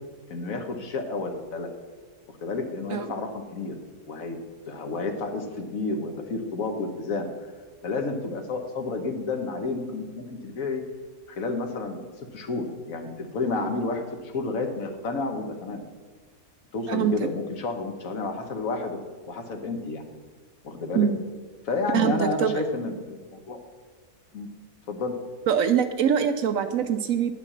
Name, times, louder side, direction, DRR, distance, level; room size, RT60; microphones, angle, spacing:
voice 1, 0.3-1.7 2.3-3.8 4.1-4.4 4.7-7.3 7.8-10.8 11.3-12.0 12.3-15.8 16.7-19.0 19.3-20.1 20.6-21.1 21.6-23.6 24.3-24.5 24.9-25.2, left 3 dB, 60° left, 5 dB, 1.4 m, -30 dB
voice 2, 21.9-22.5 25.5-27.3, right 8 dB, 70° right, 9 dB, 0.9 m, -23 dB
9.9 x 5.9 x 7.2 m, 1.4 s
omnidirectional pair, 1.6 m